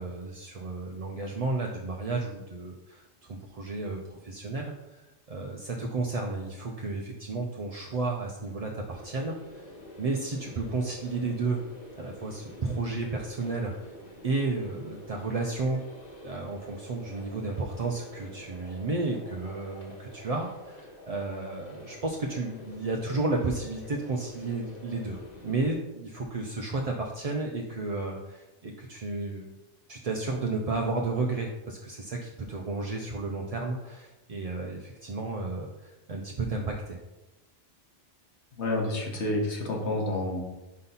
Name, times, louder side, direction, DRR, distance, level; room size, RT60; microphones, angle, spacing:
voice 1, 0.0-9.7 10.0-11.6 12.0-13.9 14.2-15.8 16.2-29.5 29.9-37.0, right 3 dB, 45° right, 0 dB, 0.5 m, -32 dB
sound 1, 8.9-25.7, left 1 dB, 35° left, 1.4 m, -47 dB
voice 2, 38.6-40.4, left 1 dB, 70° left, -1 dB, 1.6 m, -29 dB
5.2 x 4.0 x 5.6 m, 1.0 s
omnidirectional pair, 1.2 m